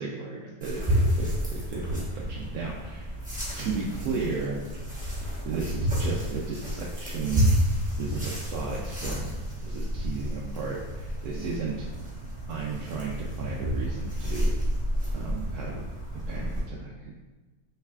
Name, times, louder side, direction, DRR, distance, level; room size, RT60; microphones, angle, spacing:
voice 1, 0.0-3.1 3.6-4.6 5.4-7.5 8.0-9.4 9.6-11.9 12.5-14.6 15.1-15.8 16.3-17.1, right 4 dB, 80° right, -3 dB, 1.1 m, -34 dB
sound 1, 0.6-16.6, equal, 5° right, 1.0 m, -30 dB
5.6 x 3.3 x 2.3 m, 1.3 s
omnidirectional pair, 1.6 m